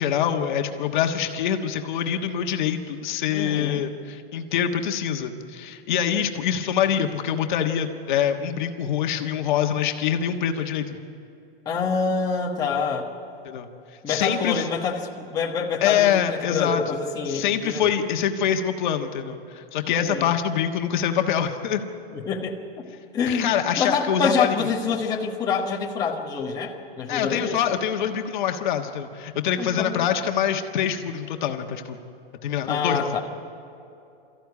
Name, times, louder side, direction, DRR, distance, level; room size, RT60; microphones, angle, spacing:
voice 1, 0.0-11.0 13.4-13.7 14.1-14.6 15.8-16.8 17.3-21.8 23.3-24.7 27.1-32.0 32.4-33.2, left 9 dB, 50° left, 4 dB, 1.5 m, -25 dB
voice 2, 3.3-3.8 11.6-13.1 14.0-17.8 19.9-20.3 22.1-22.9 23.1-23.5 23.8-27.6 29.6-30.1 32.7-33.2, left 5 dB, 10° left, -2 dB, 1.3 m, -26 dB
23.0 x 14.5 x 9.7 m, 2.7 s
supercardioid pair, 165°, 30 cm